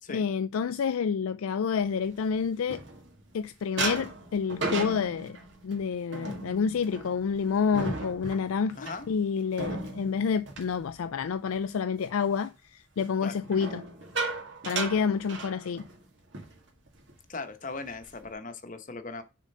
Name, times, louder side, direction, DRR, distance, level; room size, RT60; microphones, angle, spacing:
voice 1, 0.1-2.8 3.3-5.4 5.6-8.8 9.1-13.8 14.7-15.8, left 6 dB, 85° left, 0.4 m, -28 dB
sound 1, 1.9-3.3 3.8-11.6 11.9-12.3 13.4-16.0 16.3-16.5 16.9-17.1 17.6-18.3, right 3 dB, 60° right, 1.9 m, -36 dB
voice 2, 8.8-9.1 13.2-13.3 17.3-19.2, left 3 dB, 40° left, 1.0 m, -38 dB
6.5 x 3.8 x 5.3 m
head